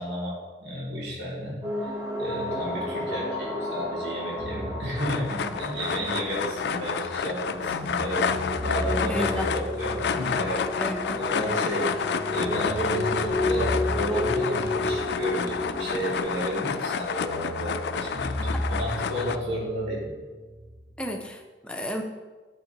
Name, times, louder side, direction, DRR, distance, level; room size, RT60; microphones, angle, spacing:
voice 1, 0.0-1.9 2.2-8.3 8.6-11.9 12.3-20.2, equal, 75° right, -6 dB, 2.4 m, -32 dB
sound 1, 1.6-16.2, left 2 dB, 20° right, 1.1 m, -33 dB
sound 2, 4.4-7.2 7.6-11.8 12.4-16.5 17.2-21.2, equal, 55° right, 0.9 m, -36 dB
sound 3, 5.0-19.4, left 6 dB, 70° left, 0.3 m, -30 dB
voice 2, 9.1-9.5 10.8-11.2 18.4-18.6 21.0-22.0, left 1 dB, 5° left, 2 dB, 0.5 m, -33 dB
8.8 x 6.2 x 2.9 m, 1.3 s
head